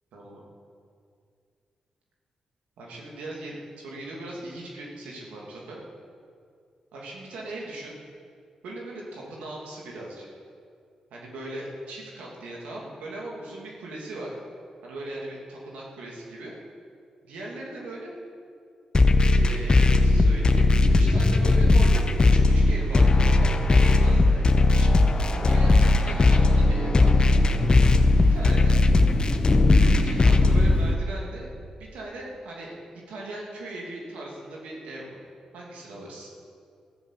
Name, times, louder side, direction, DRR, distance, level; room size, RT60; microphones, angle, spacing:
voice 1, 0.1-0.4 2.8-5.8 6.9-7.9 8.6-10.3 11.1-14.3 14.8-16.6 17.2-18.2 19.3-24.9 25.3-27.1 28.2-28.8 29.7-31.5 31.8-32.7 33.1-35.2 35.5-36.3, right 2 dB, 85° right, -3 dB, 2.7 m, -39 dB
sound 1, 18.9-30.9, left 2 dB, 40° left, 0.9 m, -18 dB
15.0 x 7.4 x 7.5 m, 2.3 s
supercardioid pair, 45°, 2 cm